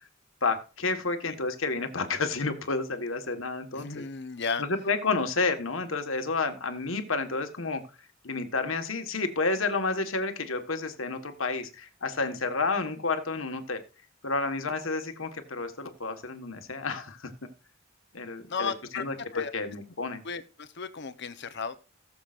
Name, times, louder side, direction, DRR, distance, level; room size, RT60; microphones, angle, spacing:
voice 1, 0.4-4.1 4.6-7.8 8.2-13.8 14.2-17.3 18.1-19.1 19.5-20.2, left 3 dB, 85° left, 1.5 m, -30 dB
voice 2, 3.7-4.6 18.5-19.1 19.3-19.5 20.2-21.8, left 5 dB, 60° left, 1.0 m, -34 dB
18.5 x 7.1 x 2.5 m
head